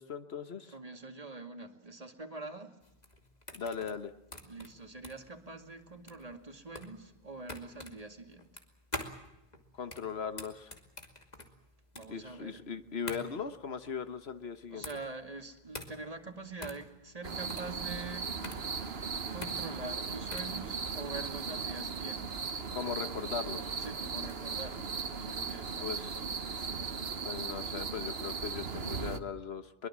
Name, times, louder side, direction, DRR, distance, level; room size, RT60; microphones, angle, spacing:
voice 1, 0.0-0.7 3.5-4.1 9.7-10.7 12.1-14.9 22.7-23.7 25.8-26.2 27.2-29.9, left 6 dB, 90° left, 11 dB, 1.5 m, -39 dB
voice 2, 0.7-2.8 4.4-8.5 11.9-12.6 14.7-18.4 19.2-22.3 23.8-25.9, right 3 dB, 35° right, 5 dB, 2.4 m, -45 dB
sound 1, 2.8-20.6, left 1 dB, 45° left, 2.6 m, -46 dB
sound 2, 17.2-29.2, right 5 dB, 75° right, 1.4 m, -37 dB
23.0 x 22.0 x 7.4 m, 0.93 s
omnidirectional pair, 1.0 m